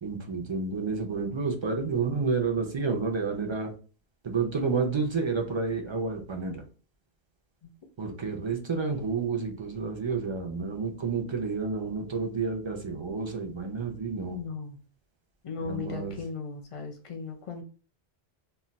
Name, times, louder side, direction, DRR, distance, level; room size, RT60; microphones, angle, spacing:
voice 1, 0.0-3.7 4.2-6.6 8.0-14.4 15.6-16.2, right 4 dB, 50° right, 2 dB, 0.3 m, -30 dB
voice 2, 14.3-14.8 15.4-17.6, left 5 dB, 40° left, 1 dB, 0.6 m, -37 dB
2.3 x 2.1 x 3.9 m, 0.38 s
omnidirectional pair, 1.1 m